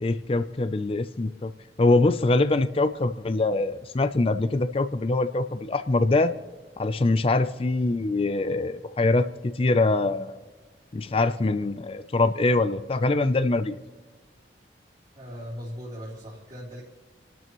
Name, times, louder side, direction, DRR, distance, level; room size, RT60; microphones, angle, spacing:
voice 1, 0.0-1.5 1.8-6.3 6.8-10.4 10.9-13.8, left 2 dB, 30° left, 11 dB, 0.4 m, -23 dB
voice 2, 15.1-16.8, equal, 40° right, -8 dB, 3.4 m, -38 dB
29.0 x 12.5 x 3.1 m, 1.3 s
head